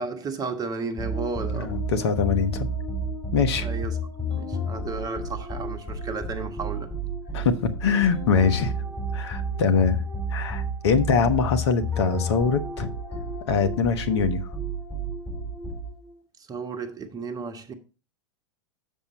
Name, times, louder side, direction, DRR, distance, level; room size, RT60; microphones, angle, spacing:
voice 1, 0.0-1.8 3.5-4.0 4.3-6.9 16.4-17.7, right 4 dB, 25° right, 1.3 m, -33 dB
sound 1, 1.0-16.1, right 1 dB, 10° left, 4.8 m, -31 dB
voice 2, 1.6-2.7 3.3-3.7 7.3-8.7 9.1-10.0 10.3-12.9 13.5-14.5, left 5 dB, 55° left, 1.1 m, -23 dB
7.5 x 7.0 x 4.2 m
figure-of-eight pair, 95°, 16 cm